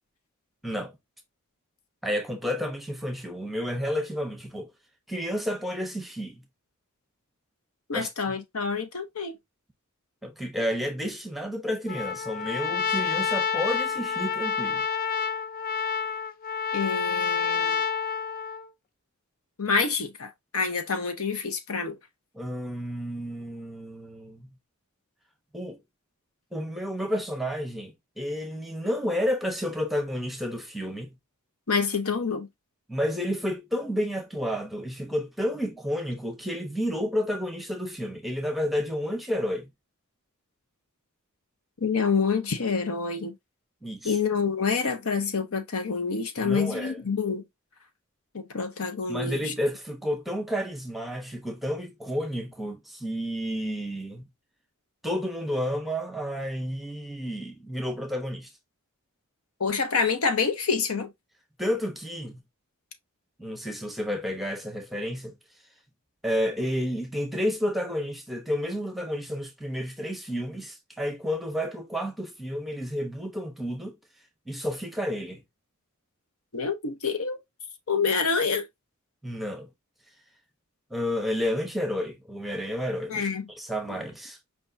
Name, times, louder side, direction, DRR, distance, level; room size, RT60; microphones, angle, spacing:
voice 1, 0.6-1.0 2.0-4.7 5.1-6.4 7.9-8.3 10.2-14.8 22.3-24.5 25.5-25.8 26.5-31.1 32.9-39.7 43.8-44.2 46.4-47.0 49.1-54.2 55.0-58.5 61.6-62.4 63.4-65.4 66.2-74.0 74.5-75.4 79.2-79.7 80.9-83.3 83.5-84.4, equal, ahead, 0.8 m, -31 dB
voice 2, 7.9-9.4 16.7-17.8 19.6-22.0 31.7-32.5 41.8-43.3 44.0-47.4 48.3-49.5 59.6-61.1 76.5-77.4 77.9-78.7 83.1-83.5 83.9-84.0, left 5 dB, 75° left, 1.0 m, -27 dB
Trumpet, 11.9-18.7, left 6 dB, 40° left, 0.4 m, -28 dB
5.0 x 3.5 x 2.6 m
head